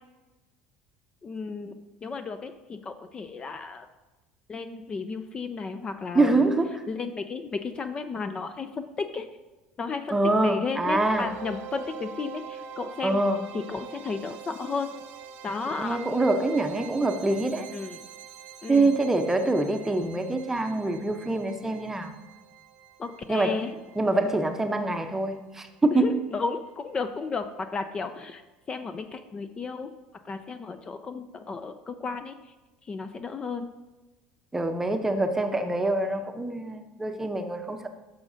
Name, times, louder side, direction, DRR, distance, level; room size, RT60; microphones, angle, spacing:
voice 1, 1.2-3.9 4.5-6.5 6.9-9.3 9.8-10.2 10.4-13.2 13.5-14.9 15.4-16.0 17.7-18.0 18.6-18.9 23.0-23.8 25.9-28.4 28.7-29.9 30.2-32.4 32.9-33.7, left 4 dB, 30° left, 9 dB, 0.4 m, -33 dB
voice 2, 6.1-6.8 10.1-11.3 13.0-13.4 15.8-17.7 18.7-22.1 23.3-23.6 23.9-26.2 34.5-37.9, right 2 dB, 10° right, 6 dB, 0.7 m, -25 dB
sound 1, 11.0-26.0, right 7 dB, 65° right, 0.6 m, -45 dB
10.5 x 6.2 x 2.7 m, 1.1 s
supercardioid pair, 100°, 3 cm